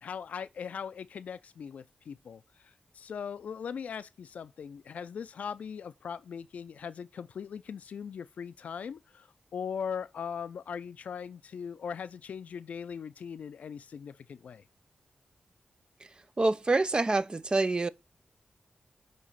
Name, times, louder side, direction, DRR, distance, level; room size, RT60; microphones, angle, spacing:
voice 1, 0.0-14.6, left 7 dB, 80° left, 0.4 m, -40 dB
voice 2, 16.4-17.9, right 3 dB, 35° right, 0.5 m, -26 dB
6.4 x 3.0 x 5.6 m
cardioid pair, 40°, 2 cm